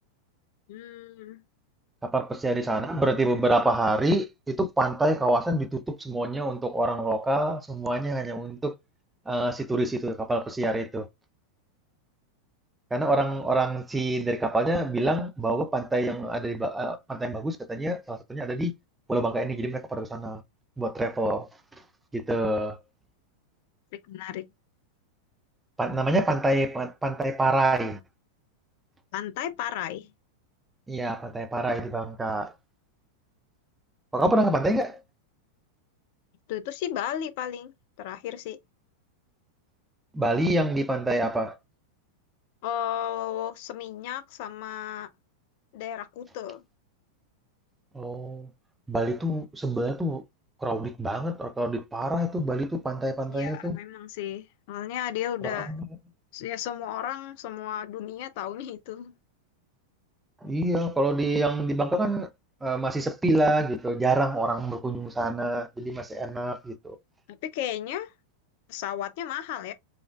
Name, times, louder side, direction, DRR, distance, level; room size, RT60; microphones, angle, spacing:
voice 1, 0.7-1.4 24.1-24.5 29.1-30.1 36.5-37.7 38.0-38.6 42.6-45.1 45.7-46.6 53.3-55.7 56.3-59.1 67.3-68.1 68.7-69.7, left 11 dB, 50° left, 0.4 m, -34 dB
voice 2, 2.0-8.7 9.3-11.1 12.9-18.7 19.1-20.4 20.8-21.5 22.1-22.8 25.8-28.0 30.9-32.5 34.1-35.0 40.1-41.5 47.9-48.5 48.9-50.2 50.6-53.8 55.4-55.9 60.4-62.3 62.6-67.0, right 1 dB, 10° right, 0.5 m, -26 dB
4.9 x 2.4 x 2.4 m
figure-of-eight pair, 90°, 0 cm